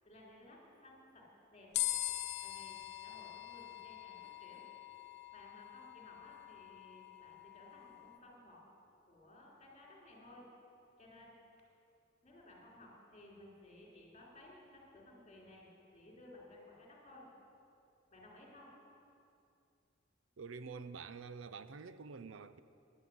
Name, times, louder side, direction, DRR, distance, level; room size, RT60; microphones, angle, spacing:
voice 1, 0.0-1.3 1.5-1.7 2.4-4.7 5.3-8.6 9.0-10.5 11.0-11.3 12.2-17.3 18.1-18.7, left 1 dB, 35° left, 3.4 m, -58 dB
sound 1, 1.7-8.2, left 16 dB, 60° left, 0.5 m, -43 dB
voice 2, 20.4-22.6, right 5 dB, 90° right, 0.5 m, -47 dB
10.0 x 9.8 x 9.5 m
head